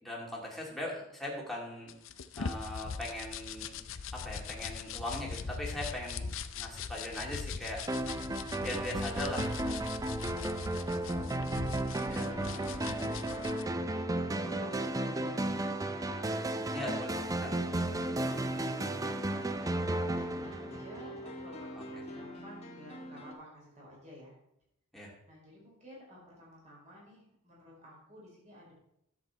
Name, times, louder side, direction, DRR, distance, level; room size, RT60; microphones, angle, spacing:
voice 1, 0.0-1.9 2.4-3.8 4.1-6.3 6.6-7.8 8.6-9.9 12.1-12.3 16.7-17.5 24.9-25.1, left 1 dB, ahead, -3 dB, 2.3 m, -40 dB
sound 1, 1.9-13.6, left 5 dB, 65° left, 0.6 m, -41 dB
sound 2, 7.9-21.4, right 1 dB, 15° right, 0.4 m, -34 dB
voice 2, 10.0-16.0 17.4-24.3 25.3-28.7, equal, 35° right, -4 dB, 4.7 m, -52 dB
sound 3, 12.1-23.3, equal, 30° left, 1.5 m, -45 dB
11.0 x 7.6 x 4.4 m, 0.79 s
head